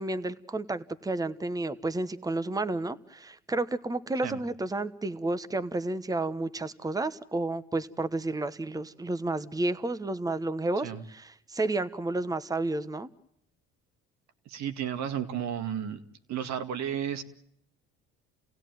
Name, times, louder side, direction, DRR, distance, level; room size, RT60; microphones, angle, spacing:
voice 1, 0.0-13.1, right 2 dB, 10° right, 12 dB, 1.1 m, -31 dB
voice 2, 14.5-16.0 16.3-17.2, right 9 dB, 70° right, 9 dB, 2.1 m, -33 dB
29.5 x 16.5 x 9.3 m, 0.76 s
supercardioid pair, 80°, 29 cm